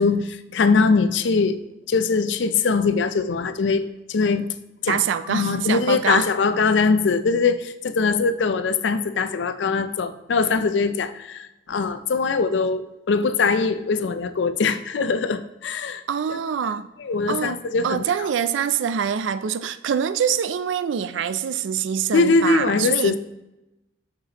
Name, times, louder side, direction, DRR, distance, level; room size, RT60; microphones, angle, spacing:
voice 1, 0.0-1.6 1.9-4.5 4.8-5.0 5.3-16.0 16.3-16.4 17.0-18.0 22.1-23.2, left 4 dB, 70° left, 0.4 m, -22 dB
voice 2, 4.9-6.3 16.1-16.9 17.3-23.2, right 7 dB, 90° right, 0.4 m, -25 dB
6.7 x 6.6 x 2.9 m
head